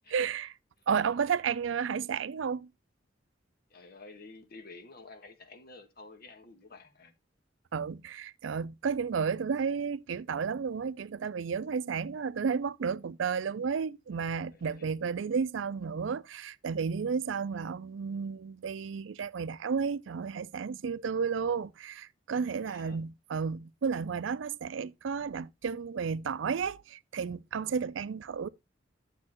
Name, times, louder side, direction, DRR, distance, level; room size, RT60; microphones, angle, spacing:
voice 1, 0.1-0.6 0.9-2.7 7.7-28.5, right 6 dB, 85° right, 0.4 m, -32 dB
voice 2, 3.7-7.1 14.5-14.8 22.6-23.0, left 3 dB, 55° left, 1.4 m, -51 dB
9.8 x 7.3 x 2.9 m
head